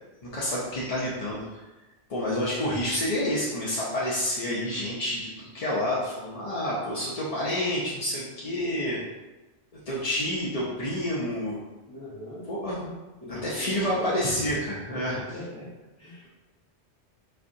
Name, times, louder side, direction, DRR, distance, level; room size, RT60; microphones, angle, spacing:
voice 1, 0.2-1.6 2.1-9.0 9.7-11.6 12.4-12.8 13.3-15.2, left 1 dB, 45° left, -7 dB, 0.5 m, -29 dB
voice 2, 8.4-9.0 11.9-12.4 13.2-14.2 14.9-15.7 16.0-16.3, left 1 dB, 20° left, -13 dB, 1.5 m, -40 dB
4.3 x 2.6 x 2.5 m, 1.1 s
omnidirectional pair, 1.1 m